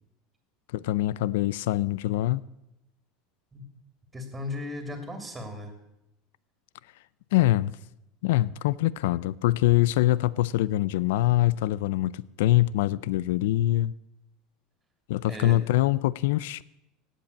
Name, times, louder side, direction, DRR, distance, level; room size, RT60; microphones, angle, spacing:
voice 1, 0.7-2.4 7.3-7.7 8.2-13.9 15.1-16.6, left 15 dB, 80° left, 0.5 m, -24 dB
voice 2, 4.1-5.7 15.3-15.6, left 1 dB, 10° right, 2.8 m, -36 dB
17.5 x 8.2 x 8.6 m
supercardioid pair, 155°, 0 cm